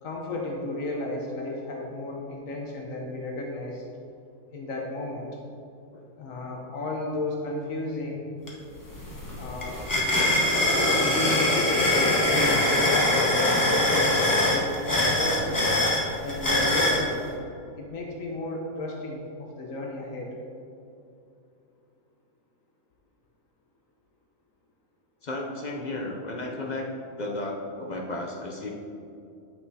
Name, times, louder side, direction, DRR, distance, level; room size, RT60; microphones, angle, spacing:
voice 1, 0.0-3.9 4.5-5.3 6.2-8.3 9.3-9.8 11.0-14.2 14.5-15.7 16.2-17.5 17.8-20.3, left 1 dB, 75° left, -1 dB, 1.2 m, -33 dB
sound 1, 8.5-8.6 8.9-17.0, left 1 dB, 15° left, 0.8 m, -23 dB
voice 2, 25.2-26.9 27.2-28.7, left 2 dB, 55° left, 0 dB, 0.5 m, -33 dB
8.9 x 5.7 x 2.7 m, 2.6 s
omnidirectional pair, 1.4 m